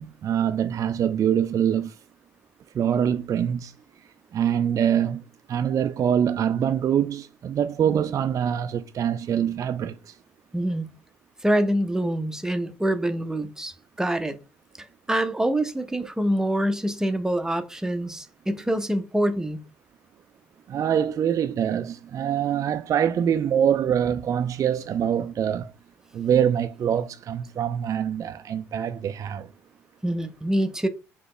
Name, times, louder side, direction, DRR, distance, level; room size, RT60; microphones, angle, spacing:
voice 1, 0.0-2.0 2.7-3.7 4.3-5.2 5.5-10.2 20.7-25.7 26.1-29.5, right 9 dB, 50° right, 0.4 m, -24 dB
voice 2, 10.5-10.9 11.4-14.4 14.8-19.6 30.0-30.9, right 1 dB, 10° right, 0.7 m, -25 dB
4.0 x 2.9 x 3.2 m
hypercardioid pair, 60°, 7 cm